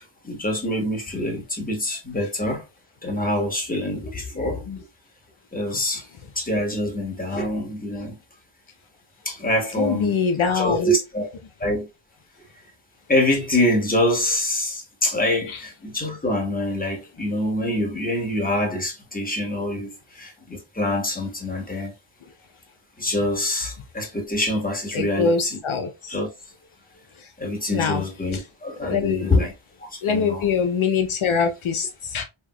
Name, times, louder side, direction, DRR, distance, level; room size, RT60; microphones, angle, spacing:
voice 1, 0.0-2.6 3.0-4.8 5.5-6.1 6.3-8.2 9.2-10.1 10.5-11.3 11.6-11.9 13.1-21.9 23.0-25.6 26.1-26.3 27.4-29.5 29.8-30.4, left 1 dB, 15° left, 1.2 m, -25 dB
voice 2, 9.8-10.9 15.5-15.6 24.9-26.1 27.2-27.3 27.7-28.1 28.3-28.4 28.8-29.3 30.0-32.2, left 5 dB, 75° left, 0.7 m, -24 dB
3.3 x 3.0 x 2.2 m
wide cardioid pair, 65°, 49 cm